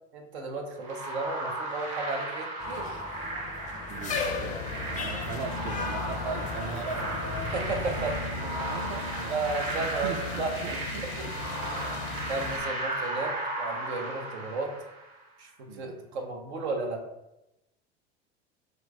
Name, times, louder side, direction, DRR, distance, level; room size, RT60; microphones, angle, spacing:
voice 1, 0.1-3.0 7.5-8.4 9.3-10.1 10.4-10.5 12.2-14.7 15.4-17.0, right 3 dB, 85° right, 2 dB, 0.7 m, -33 dB
sound 1, 0.8-15.2, right 2 dB, 60° right, 1.4 m, -35 dB
sound 2, 2.6-8.3, left 4 dB, 25° left, 0.4 m, -36 dB
voice 2, 3.9-7.3 8.2-11.4 15.7-16.0, right 5 dB, 45° right, 7 dB, 0.4 m, -40 dB
sound 3, 4.1-12.6, left 3 dB, 85° left, 0.6 m, -38 dB
3.0 x 2.5 x 3.1 m, 0.89 s
hypercardioid pair, 80°, 32 cm